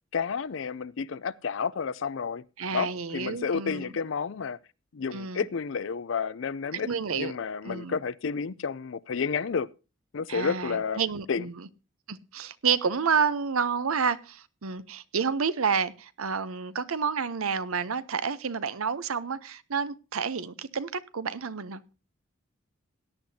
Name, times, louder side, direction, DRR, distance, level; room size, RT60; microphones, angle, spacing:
voice 1, 0.1-2.4 2.7-4.6 4.9-9.7 10.1-11.0 11.3-11.5, left 5 dB, 65° left, 0.5 m, -31 dB
voice 2, 2.6-3.9 5.1-5.4 6.7-7.3 7.6-8.0 10.3-11.7 12.1-21.9, right 6 dB, 90° right, 0.7 m, -29 dB
17.5 x 10.5 x 2.8 m
head